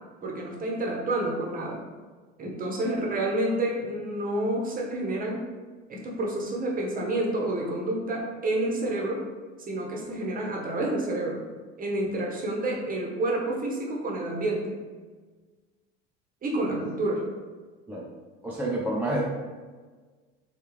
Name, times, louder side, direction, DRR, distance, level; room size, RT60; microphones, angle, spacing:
voice 1, 0.2-1.8 2.4-5.5 5.9-9.2 9.7-11.4 11.8-14.8 16.4-17.2, right 1 dB, 25° right, -2 dB, 0.8 m, -29 dB
voice 2, 18.4-19.2, right 1 dB, 5° right, -5 dB, 0.4 m, -29 dB
3.4 x 2.3 x 3.1 m, 1.4 s
figure-of-eight pair, 70°, 35 cm